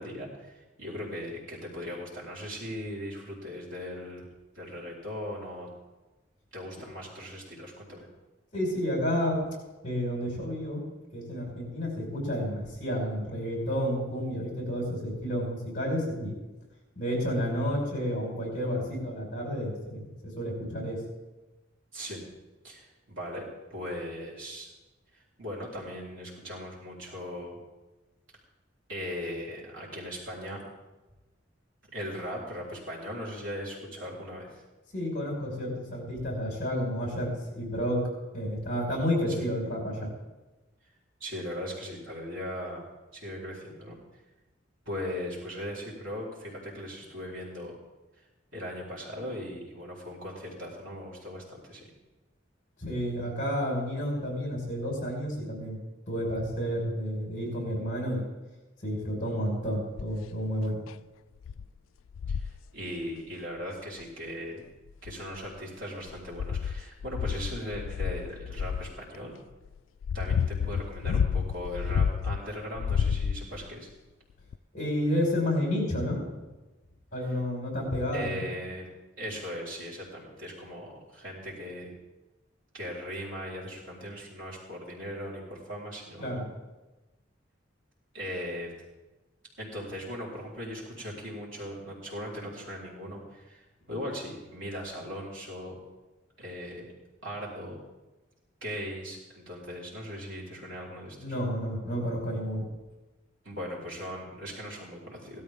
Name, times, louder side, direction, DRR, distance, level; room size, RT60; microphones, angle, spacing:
voice 1, 0.0-4.3 4.5-5.7 6.5-8.1 21.9-22.2 22.6-24.7 25.1-27.6 28.9-30.6 31.9-34.6 39.4-39.5 41.2-44.0 44.9-47.8 48.5-51.9 62.3-64.6 65.0-69.4 70.1-73.9 78.1-78.9 79.2-81.9 82.7-86.5 88.1-88.7 89.6-95.8 96.4-96.9 97.2-97.8 98.6-101.3 103.4-105.4, equal, 75° right, -5 dB, 4.0 m, -39 dB
voice 2, 8.5-9.4 9.8-10.8 11.1-16.3 16.9-20.1 20.3-21.0 34.9-38.0 38.3-40.1 52.8-55.8 56.1-58.2 58.8-60.8 74.7-76.2 77.1-78.4 86.2-86.4 101.2-102.6, equal, 45° left, -1 dB, 4.9 m, -30 dB
sound 1, 60.0-60.3 60.9-61.0 61.4-61.7 62.1-62.6 64.0-64.1 64.9-65.6 66.1-68.9 69.7-72.4 72.8-73.7 74.5-74.6, left 6 dB, 85° left, 0.3 m, -30 dB
17.0 x 12.5 x 3.6 m, 1.1 s
head